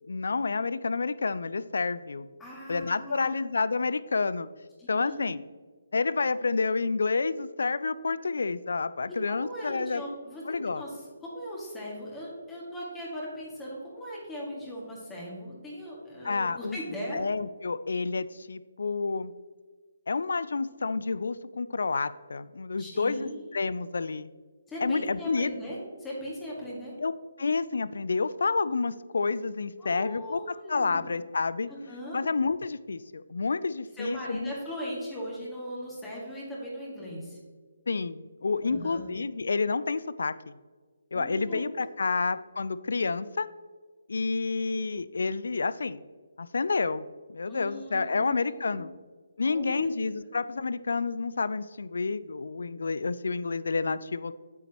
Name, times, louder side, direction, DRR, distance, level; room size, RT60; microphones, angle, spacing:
voice 1, 0.1-2.3 2.7-4.5 4.9-5.4 5.9-10.0 10.5-10.8 16.2-16.8 17.1-19.3 20.1-24.3 24.8-25.5 27.0-27.1 27.4-30.4 30.7-31.7 32.1-34.5 37.9-40.5 41.1-43.5 44.1-46.0 46.4-47.1 47.3-48.9 49.4-54.3, left 4 dB, 70° left, 15 dB, 0.4 m, -29 dB
voice 2, 2.4-3.4 4.8-5.3 9.1-17.2 22.8-23.4 24.7-26.9 29.8-31.1 31.7-32.2 33.9-37.4 38.6-39.0 41.1-41.6 42.0-42.1 47.5-48.9 49.4-49.9, equal, 10° left, -5 dB, 2.1 m, -39 dB
8.4 x 8.1 x 3.0 m, 1.5 s
figure-of-eight pair, 145°, 0 cm